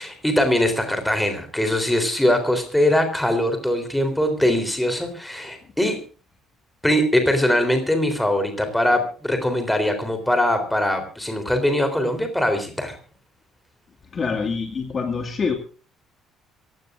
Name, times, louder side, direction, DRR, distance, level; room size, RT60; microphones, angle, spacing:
voice 1, 0.0-6.0 6.8-13.0, left 1 dB, 5° left, 7 dB, 3.5 m, -21 dB
voice 2, 14.1-15.5, left 5 dB, 25° left, 2 dB, 2.1 m, -25 dB
27.0 x 16.5 x 2.5 m, 0.37 s
cardioid pair, 180°, 0 cm